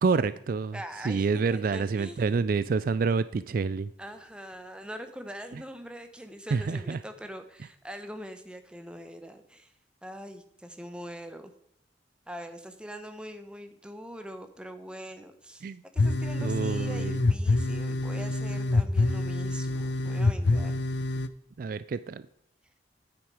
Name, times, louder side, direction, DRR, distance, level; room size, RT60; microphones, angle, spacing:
voice 1, 0.0-0.8 1.0-3.9 6.5-7.0 15.6-15.8 16.4-17.2 21.6-22.2, right 4 dB, 50° right, 15 dB, 0.3 m, -27 dB
voice 2, 0.7-2.4 4.0-9.7 10.0-11.5 12.3-20.7, equal, 5° right, 7 dB, 0.9 m, -43 dB
sound 1, 16.0-21.3, left 2 dB, 75° left, 0.7 m, -26 dB
9.0 x 8.9 x 4.8 m, 0.73 s
head